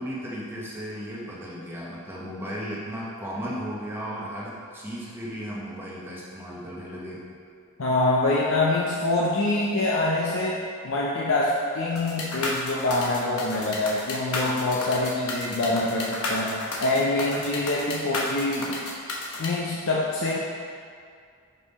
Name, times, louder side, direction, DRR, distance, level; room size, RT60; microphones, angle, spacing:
voice 1, 0.0-7.2, equal, 10° right, -7 dB, 1.0 m, -35 dB
voice 2, 7.8-18.7 19.4-20.4, left 2 dB, 65° left, -5 dB, 0.6 m, -25 dB
sound 1, 12.0-19.5, left 2 dB, 85° left, 1.0 m, -32 dB
5.4 x 5.1 x 4.2 m, 2.3 s
head